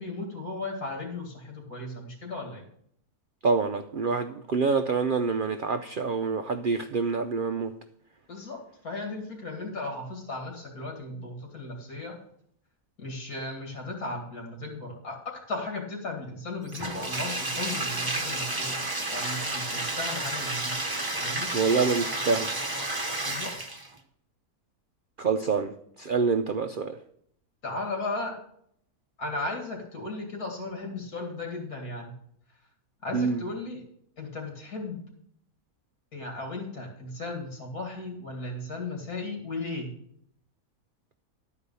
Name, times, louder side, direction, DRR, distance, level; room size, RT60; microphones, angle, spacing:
voice 1, 0.0-2.6 8.3-12.2 13.0-18.8 19.1-20.8 21.1-21.5 23.2-23.5 27.6-28.4 29.2-32.1 33.0-33.8 34.2-35.0 36.1-39.9, left 2 dB, 85° left, 2 dB, 2.7 m, -36 dB
voice 2, 3.4-7.7 21.5-22.5 25.2-25.7 26.0-27.0 33.1-33.4, right 4 dB, 75° right, 7 dB, 0.4 m, -26 dB
Bathtub (filling or washing), 16.7-23.9, right 2 dB, 20° right, 0.7 m, -31 dB
11.5 x 4.8 x 6.8 m, 0.68 s
omnidirectional pair, 1.6 m